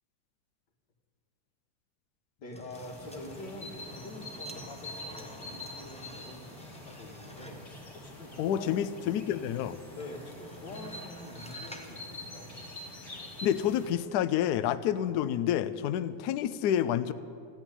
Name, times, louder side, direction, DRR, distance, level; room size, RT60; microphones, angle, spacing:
voice 1, 2.4-8.9 9.9-12.6, left 2 dB, 60° left, 1 dB, 2.4 m, -45 dB
sound 1, 2.5-7.7 10.0-12.0 12.3-12.4, equal, 5° left, 0.6 m, -51 dB
sound 2, 2.7-13.9, left 1 dB, 30° left, 3.2 m, -45 dB
voice 2, 8.4-9.8 13.4-17.1, left 10 dB, 80° left, 13 dB, 0.9 m, -29 dB
15.0 x 8.9 x 9.8 m, 2.3 s
omnidirectional pair, 2.2 m